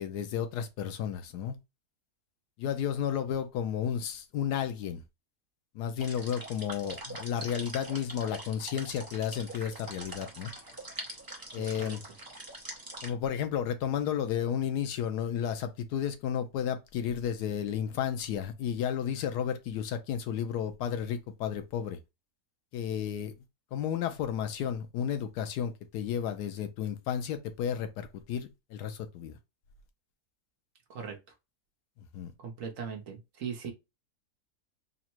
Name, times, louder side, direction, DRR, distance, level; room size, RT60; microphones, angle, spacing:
voice 1, 0.0-1.6 2.6-5.0 5.7-10.5 11.5-12.0 13.0-22.0 22.7-23.3 23.7-29.4 32.1-32.3, left 8 dB, 85° left, 1.2 m, -32 dB
sound 1, 6.0-13.1, right 2 dB, 20° right, 0.6 m, -43 dB
voice 2, 11.6-12.0 30.9-31.2 32.4-33.7, right 6 dB, 60° right, 1.0 m, -39 dB
3.8 x 2.1 x 4.3 m
omnidirectional pair, 1.7 m